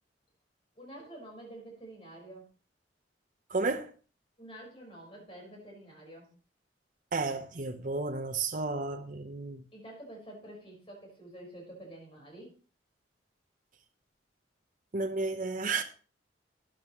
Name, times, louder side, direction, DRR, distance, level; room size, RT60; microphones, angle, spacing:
voice 1, 0.7-2.5 4.4-6.3 9.7-12.5, right 1 dB, 30° left, 4.7 m, -48 dB
voice 2, 3.5-3.9 7.1-9.6 14.9-15.8, right 3 dB, 45° right, 0.7 m, -32 dB
12.5 x 10.5 x 3.0 m
head